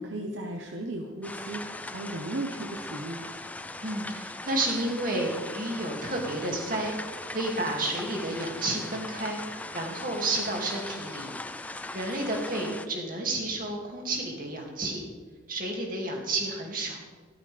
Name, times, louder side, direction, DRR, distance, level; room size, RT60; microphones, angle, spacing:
voice 1, 0.0-3.3 12.6-12.7, right 1 dB, 70° right, 2 dB, 1.0 m, -36 dB
sound 1, 1.2-12.9, left 2 dB, 10° left, 0.4 m, -39 dB
voice 2, 3.8-9.4 9.7-11.3 11.9-15.0 15.5-17.1, right 2 dB, 45° right, 0 dB, 2.4 m, -31 dB
14.0 x 13.0 x 3.5 m, 1.5 s
head